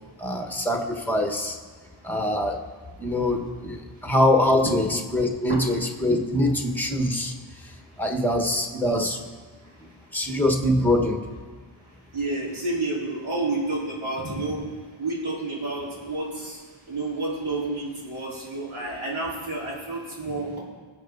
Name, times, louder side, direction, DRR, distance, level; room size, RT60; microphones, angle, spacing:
voice 1, 0.2-1.6 2.0-2.6 3.0-7.3 8.0-9.2 10.1-11.2, left 1 dB, 5° left, 3 dB, 1.2 m, -23 dB
voice 2, 12.1-14.6 15.0-16.6 16.9-20.5, right 2 dB, 80° right, -5 dB, 4.2 m, -29 dB
23.0 x 8.0 x 4.0 m, 1.5 s
wide cardioid pair, 170°, 49 cm